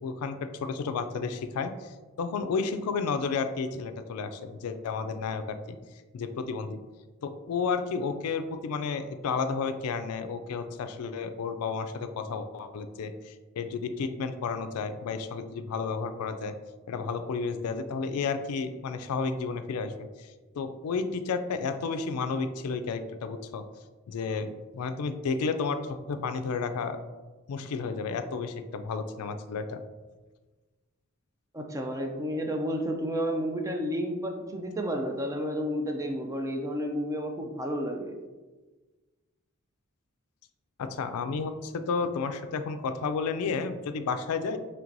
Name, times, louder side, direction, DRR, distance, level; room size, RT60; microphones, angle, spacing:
voice 1, 0.0-5.8 6.1-6.8 7.2-16.5 16.9-20.1 20.5-23.6 24.1-27.0 27.5-29.8 40.8-44.6, left 5 dB, 80° left, 9 dB, 0.3 m, -32 dB
voice 2, 31.5-38.2, equal, 15° right, 2 dB, 0.4 m, -31 dB
4.6 x 3.2 x 2.6 m, 1.3 s
head